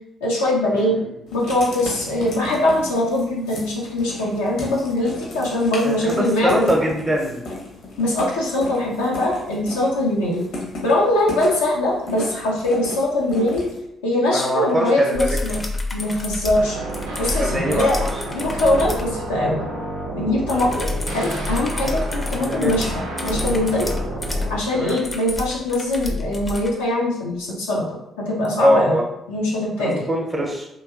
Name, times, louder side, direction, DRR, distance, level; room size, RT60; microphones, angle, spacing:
voice 1, 0.2-1.0 1.3-6.7 8.0-10.4 10.8-13.6 14.0-15.6 15.9-16.8 17.2-18.0 18.3-19.6 20.1-20.8 21.1-23.9 24.5-29.0 29.3-30.1, left 1 dB, 85° left, -5 dB, 0.5 m, -22 dB
Writing, 1.3-13.8, left 1 dB, 70° left, 0.8 m, -35 dB
voice 2, 5.8-7.4 14.3-15.4 17.4-18.1 20.5-20.6 22.5-22.8 24.7-25.0 28.6-29.0 29.8-30.7, equal, 20° right, 0 dB, 0.7 m, -22 dB
sound 1, 15.1-19.1 20.5-26.7 28.4-28.5, left 2 dB, 25° left, 0.5 m, -29 dB
sound 2, 16.6-24.6, right 1 dB, 80° right, 0.5 m, -30 dB
2.9 x 2.6 x 2.4 m, 0.84 s
hypercardioid pair, 45°, 0 cm